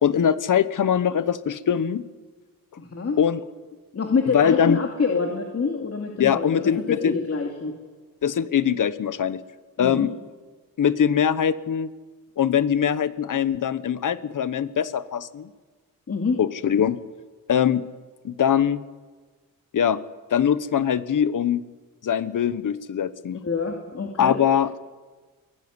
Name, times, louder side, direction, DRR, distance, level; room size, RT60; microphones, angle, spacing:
voice 1, 0.0-2.0 3.2-3.4 4.3-4.8 6.2-7.1 8.2-9.4 9.8-10.1 10.8-11.9 12.4-15.5 16.4-17.0 17.5-17.8 18.2-18.8 19.7-20.0 20.3-21.7 22.0-23.4 24.2-24.8, left 8 dB, 60° left, 15 dB, 1.1 m, -22 dB
voice 2, 2.8-3.2 3.9-7.8 9.8-10.1 16.1-16.4 23.4-24.4, left 4 dB, 45° left, 2 dB, 2.4 m, -26 dB
23.5 x 17.5 x 9.7 m, 1.4 s
wide cardioid pair, 135°, 34 cm